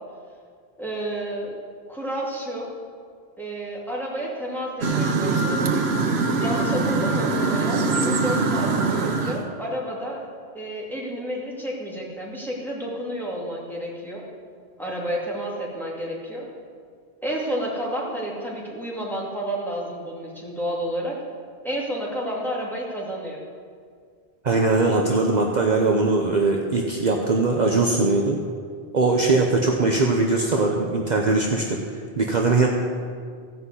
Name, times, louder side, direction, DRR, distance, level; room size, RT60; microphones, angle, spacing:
voice 1, 0.8-1.6 1.9-2.7 3.4-5.8 6.4-10.2 10.5-14.2 14.8-16.5 17.2-21.2 21.6-23.4, equal, ahead, -5 dB, 2.6 m, -30 dB
sound 1, 4.8-9.5, right 3 dB, 85° right, 1.3 m, -23 dB
voice 2, 24.4-28.4 28.9-32.7, right 3 dB, 45° right, 0 dB, 1.0 m, -21 dB
15.5 x 5.7 x 8.2 m, 2.1 s
omnidirectional pair, 1.0 m